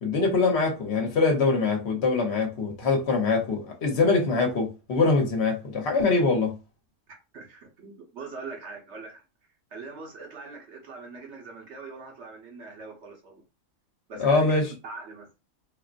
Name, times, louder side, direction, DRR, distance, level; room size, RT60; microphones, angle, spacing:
voice 1, 0.0-6.6 14.2-14.7, left 3 dB, 60° left, 1.1 m, -23 dB
voice 2, 7.1-9.2 9.7-13.4 14.1-15.3, right 4 dB, 65° right, 1.2 m, -42 dB
3.8 x 2.0 x 2.5 m
omnidirectional pair, 1.3 m